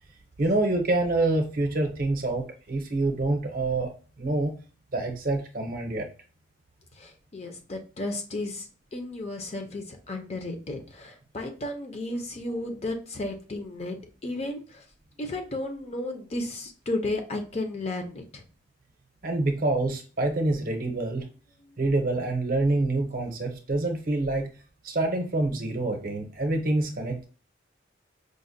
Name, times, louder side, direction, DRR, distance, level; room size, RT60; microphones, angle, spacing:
voice 1, 0.4-4.5 4.9-6.1 19.2-21.3 21.8-24.5 24.8-27.2, right 2 dB, 45° right, 3 dB, 0.7 m, -26 dB
voice 2, 6.9-14.8 15.2-18.4, left 2 dB, 30° left, 4 dB, 0.5 m, -34 dB
5.1 x 2.1 x 2.6 m, 0.36 s
head